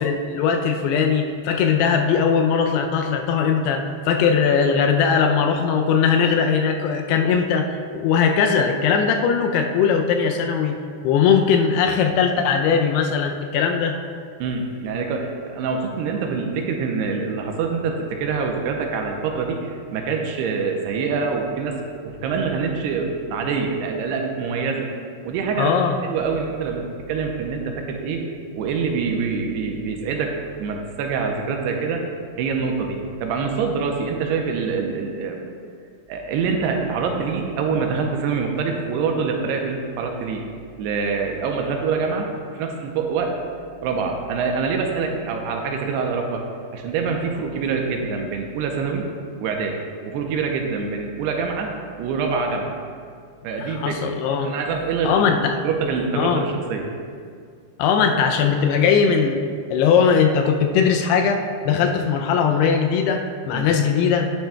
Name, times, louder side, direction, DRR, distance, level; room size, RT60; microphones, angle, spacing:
voice 1, 0.0-10.8 11.0-14.0 25.6-26.0 53.6-54.5 55.0-55.6 56.1-56.5 57.8-59.4 59.7-64.3, left 6 dB, 85° left, 4 dB, 2.5 m, -20 dB
voice 2, 14.4-21.8 22.0-24.9 25.2-25.7 26.0-28.2 28.6-32.0 32.4-35.4 36.1-40.4 40.8-43.4 43.8-46.5 46.7-49.1 49.4-49.8 50.1-51.7 52.0-52.7 53.4-54.0 54.4-55.4 55.6-56.9 63.5-63.7, right 5 dB, 85° right, 2 dB, 2.7 m, -25 dB
10.5 x 9.6 x 2.3 m, 2.1 s
omnidirectional pair, 4.9 m